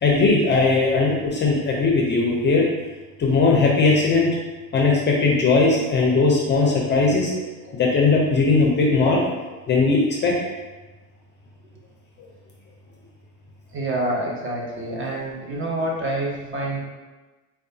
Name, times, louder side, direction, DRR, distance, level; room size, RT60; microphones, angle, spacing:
voice 1, 0.0-2.7 3.2-4.4 4.7-7.3 7.7-9.2 9.7-10.4, left 3 dB, 30° left, -2 dB, 0.5 m, -19 dB
voice 2, 13.7-16.8, right 1 dB, 30° right, -2 dB, 0.8 m, -27 dB
4.6 x 2.3 x 2.7 m, 1.2 s
supercardioid pair, 105°, 40 cm